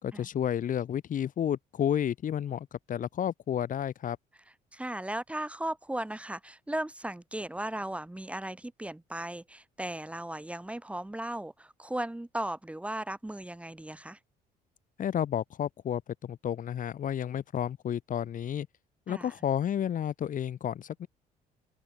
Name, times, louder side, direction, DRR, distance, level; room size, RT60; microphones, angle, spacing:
voice 1, 0.0-4.2 15.0-18.7 19.1-21.1, left 9 dB, 50° left, 3.6 m, -31 dB
voice 2, 4.7-14.2 19.1-19.3, right 1 dB, 5° right, 2.9 m, -36 dB
open air
cardioid pair, 110°, 17 cm